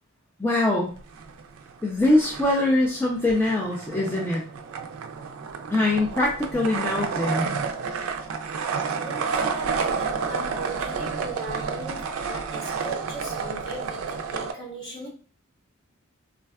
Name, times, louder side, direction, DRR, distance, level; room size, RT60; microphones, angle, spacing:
voice 1, 0.4-0.9 1.8-4.4 5.7-7.5, left 2 dB, 10° left, 0.3 m, -23 dB
sound 1, 1.0-1.7 2.0-14.5, right 5 dB, 70° right, 0.3 m, -30 dB
voice 2, 8.9-15.1, right 1 dB, 55° left, 1.2 m, -38 dB
3.4 x 2.2 x 2.2 m
head